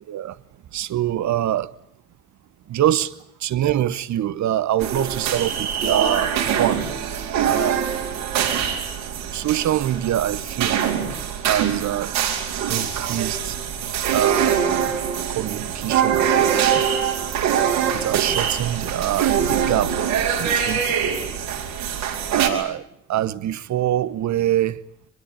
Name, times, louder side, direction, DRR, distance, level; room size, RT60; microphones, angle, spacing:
voice 1, 0.7-1.7 2.7-3.1 3.4-6.8 7.4-7.8 9.3-10.8 11.5-12.1 12.7-13.6 14.1-14.6 15.3-16.8 17.9-19.9 20.4-21.1 22.3-22.8 23.1-24.8, right 12 dB, 55° right, 1.2 m, -24 dB
sound 1, 4.8-22.5, right 8 dB, 75° right, 4.3 m, -23 dB
24.0 x 22.0 x 8.6 m
hypercardioid pair, 50°, 33 cm